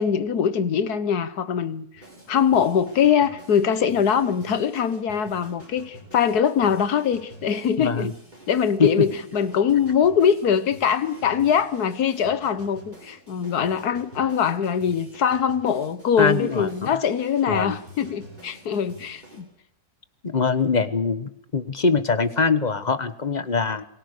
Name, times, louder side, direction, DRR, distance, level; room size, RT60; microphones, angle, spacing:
voice 1, 0.0-1.9 2.3-8.1 8.5-19.5, left 7 dB, 80° left, 1.7 m, -22 dB
sound 1, 1.9-19.4, right 1 dB, 30° right, 6.4 m, -47 dB
voice 2, 7.8-8.1 8.8-9.1 16.2-16.7 17.5-17.7 20.2-23.8, left 4 dB, 30° left, 1.2 m, -23 dB
28.0 x 20.5 x 6.7 m
omnidirectional pair, 1.6 m